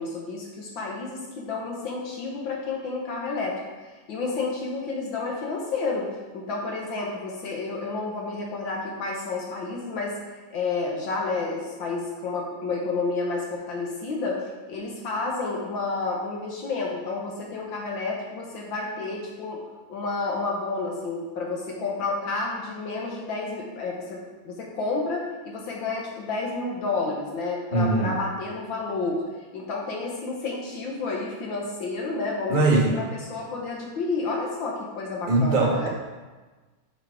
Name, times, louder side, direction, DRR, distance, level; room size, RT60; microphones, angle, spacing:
voice 1, 0.0-3.6 4.1-6.1 6.3-10.2 10.5-14.4 14.7-19.6 19.9-29.2 29.5-35.9, left 3 dB, 65° left, -1 dB, 1.7 m, -30 dB
voice 2, 27.7-28.2 32.5-33.0 35.3-35.9, right 2 dB, 25° right, -3 dB, 1.3 m, -21 dB
6.9 x 5.7 x 4.9 m, 1.3 s
omnidirectional pair, 2.4 m